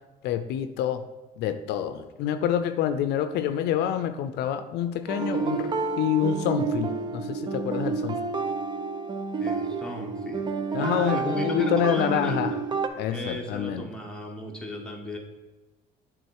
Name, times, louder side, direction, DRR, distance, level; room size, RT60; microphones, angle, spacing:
voice 1, 0.2-1.0 1.4-8.3 10.7-12.5 13.0-13.9, left 9 dB, 80° left, 10 dB, 0.5 m, -27 dB
sound 1, 5.1-12.9, right 4 dB, 25° right, 0.6 m, -29 dB
voice 2, 9.4-12.6 13.1-15.2, left 1 dB, 5° left, 0 dB, 1.2 m, -35 dB
8.2 x 3.6 x 4.6 m, 1.1 s
cardioid pair, 110°, 17 cm